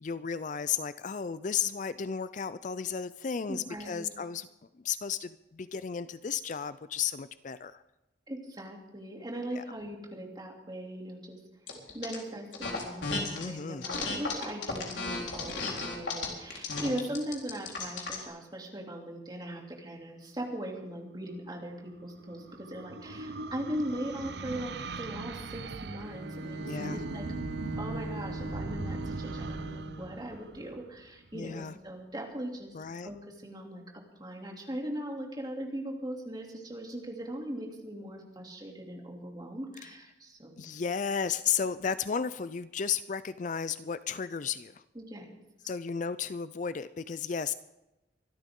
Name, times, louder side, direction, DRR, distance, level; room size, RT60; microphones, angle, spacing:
voice 1, 0.0-4.5 4.8-7.8 9.5-9.6 13.3-13.9 26.6-27.0 31.3-31.7 32.7-33.1 40.6-44.8 45.7-47.5, left 7 dB, 40° left, 14 dB, 0.4 m, -33 dB
voice 2, 3.5-4.1 8.3-11.4 11.9-27.3 27.8-32.7 33.0-40.6 44.9-45.3, right 1 dB, 20° right, 0 dB, 2.9 m, -39 dB
sound 1, 11.7-12.2 12.5-13.5 13.8-18.2, left 3 dB, 80° left, 4.0 m, -34 dB
sound 2, 21.8-31.3, right 3 dB, 60° right, 0.6 m, -40 dB
Bowed string instrument, 26.0-30.1, right 2 dB, 80° right, 2.8 m, -40 dB
24.5 x 13.0 x 3.8 m, 0.98 s
head